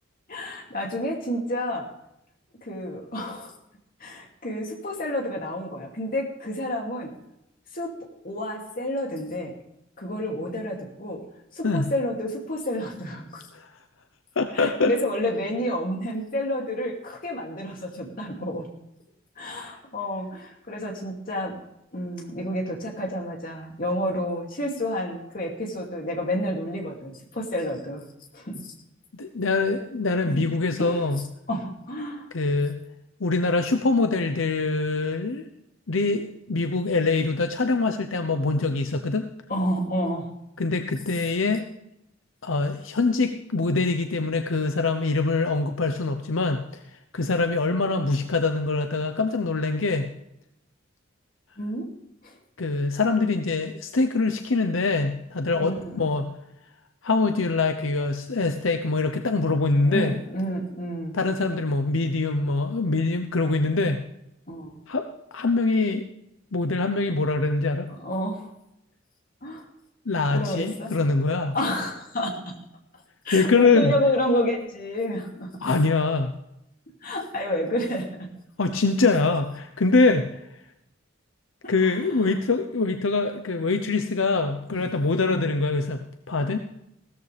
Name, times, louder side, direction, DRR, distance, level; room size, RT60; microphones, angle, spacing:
voice 1, 0.3-1.9 2.6-3.5 4.0-7.1 7.7-7.9 8.2-9.5 10.0-11.2 11.5-13.5 14.5-18.7 19.4-21.6 21.9-28.0 28.3-28.7 30.3-30.4 30.8-31.1 31.5-32.3 39.5-40.3 51.6-51.9 52.2-52.3 55.6-56.1 59.8-61.2 64.5-64.8 67.9-68.5 69.4-69.6 70.3-70.9 71.5-72.6 73.2-75.7 77.0-78.3 81.6-82.0 84.7-84.9 85.2-85.5, equal, 45° left, 1 dB, 2.7 m, -29 dB
voice 2, 14.4-14.9 29.1-31.2 32.3-32.8 33.2-35.5 35.9-39.3 40.6-41.6 42.4-46.6 47.1-50.1 52.6-56.3 57.0-60.1 61.1-64.0 64.9-66.1 66.5-67.9 70.1-71.5 73.3-73.9 75.6-76.3 78.6-80.3 81.7-86.0 86.3-86.6, left 3 dB, 80° left, 7 dB, 0.9 m, -24 dB
16.0 x 13.5 x 3.5 m, 0.83 s
head